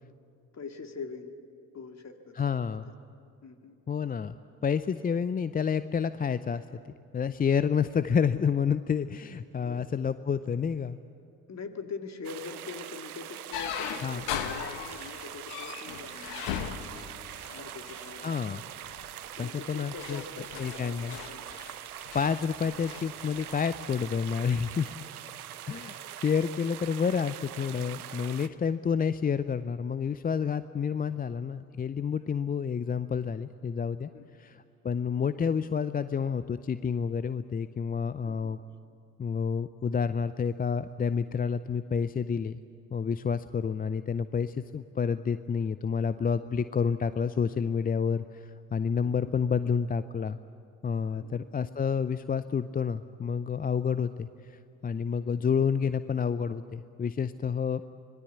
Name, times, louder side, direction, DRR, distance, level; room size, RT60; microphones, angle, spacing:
voice 1, 0.5-1.3 1.7-2.8 3.4-3.8 9.6-9.8 11.5-16.8 17.5-18.3 19.4-21.5 32.2-32.4 34.1-34.3 38.2-38.6 49.0-49.2 51.1-51.7, left 4 dB, 40° left, 5 dB, 2.3 m, -43 dB
voice 2, 2.4-2.9 3.9-4.4 4.6-11.0 14.0-14.2 18.2-18.6 19.4-20.2 20.6-21.2 22.1-24.9 25.7-34.1 34.4-38.6 39.2-42.6 42.9-50.4 50.8-57.8, left 6 dB, 20° left, 14 dB, 0.5 m, -29 dB
sound 1, 12.2-28.5, right 12 dB, 90° right, 0.7 m, -43 dB
sound 2, 13.5-18.2 18.8-19.1 19.6-23.6, left 9 dB, 65° left, 1.5 m, -39 dB
25.5 x 19.5 x 8.3 m, 2.4 s
figure-of-eight pair, 50°, 43 cm